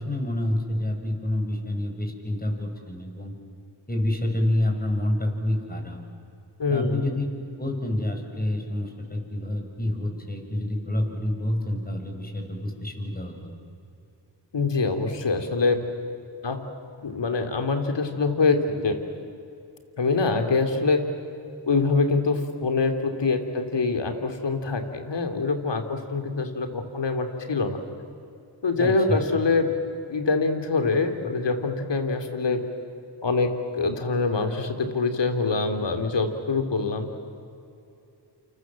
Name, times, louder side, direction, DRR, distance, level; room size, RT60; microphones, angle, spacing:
voice 1, 0.0-3.3 3.9-6.0 6.7-7.3 7.6-13.5 28.8-29.2, left 1 dB, 20° left, 2 dB, 7.2 m, -28 dB
voice 2, 6.6-7.0 14.5-15.8 16.4-16.7 17.0-19.0 20.0-21.0 21.7-27.8 28.6-29.7 30.1-32.6 33.2-37.1, left 3 dB, 65° left, 6 dB, 3.4 m, -24 dB
28.5 x 27.0 x 7.7 m, 2.7 s
cardioid pair, 50°, 46 cm